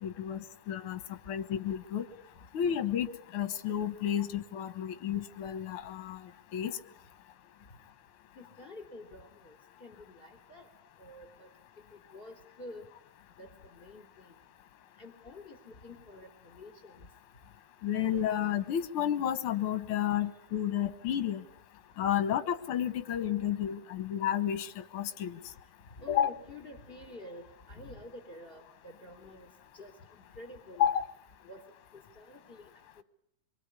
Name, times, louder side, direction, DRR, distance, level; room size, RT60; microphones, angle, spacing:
voice 1, 0.0-2.1 2.5-6.2 6.5-6.8 17.8-21.4 22.0-25.4 26.1-26.3 30.8-31.1, left 10 dB, 55° left, 11 dB, 1.9 m, -31 dB
voice 2, 8.4-10.7 11.0-11.5 11.9-12.9 13.4-14.3 15.0-17.1 26.0-29.5 29.7-30.9 31.4-31.6 31.9-32.7 33.0-33.1, left 1 dB, 20° left, 6 dB, 3.5 m, -49 dB
24.5 x 24.0 x 9.7 m, 0.72 s
omnidirectional pair, 3.4 m